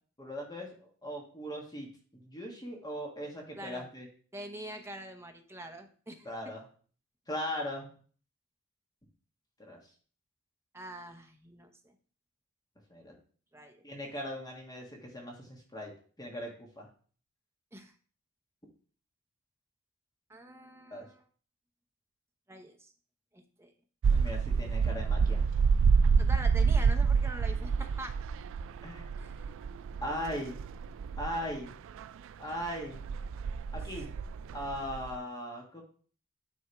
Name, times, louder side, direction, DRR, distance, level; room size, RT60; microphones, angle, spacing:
voice 1, 0.2-4.1 6.2-6.6 7.3-7.9 9.6-9.8 12.9-13.2 13.8-15.9 16.2-16.5 16.8-16.9 20.9-21.1 24.1-25.4 28.8-29.1 30.0-30.6 31.2-31.7 32.4-33.0 33.7-34.1 34.5-35.8, equal, 20° left, 0 dB, 1.5 m, -39 dB
voice 2, 3.6-3.9 4.3-6.3 10.7-11.9 13.5-13.8 17.7-17.9 20.3-21.2 22.5-22.9 23.3-23.7 26.2-28.1 29.2-29.5, right 1 dB, 10° right, 5 dB, 0.8 m, -44 dB
sound 1, 24.0-32.1 32.7-35.2, right 5 dB, 60° right, 0.3 m, -28 dB
9.8 x 3.5 x 4.6 m, 0.42 s
head